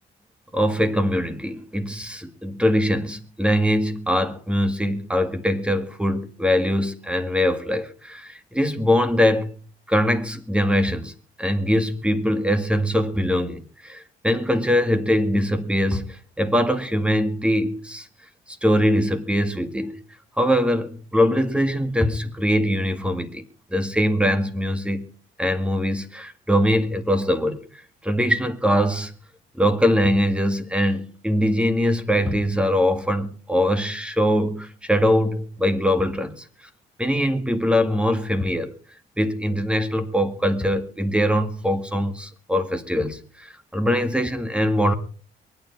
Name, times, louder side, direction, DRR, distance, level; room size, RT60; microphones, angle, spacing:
voice 1, 0.5-9.6 9.9-18.1 18.5-19.9 20.4-23.4 23.7-25.1 25.4-27.7 28.0-29.1 29.5-36.5 37.0-38.7 39.2-44.9, equal, 5° right, 2.1 m, -22 dB
23.0 x 9.8 x 4.8 m
cardioid pair, 90°, 20 cm